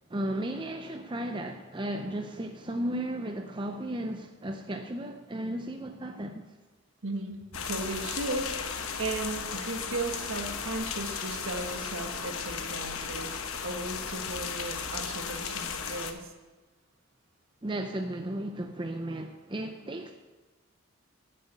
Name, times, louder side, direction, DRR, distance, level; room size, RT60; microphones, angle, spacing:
voice 1, 0.1-6.5 17.6-20.1, right 1 dB, 25° right, 5 dB, 0.6 m, -34 dB
voice 2, 7.0-16.3, right 2 dB, 75° right, 4 dB, 1.4 m, -36 dB
sound 1, 7.5-16.1, left 6 dB, 90° left, 1.1 m, -35 dB
11.0 x 7.6 x 8.2 m, 1.2 s
head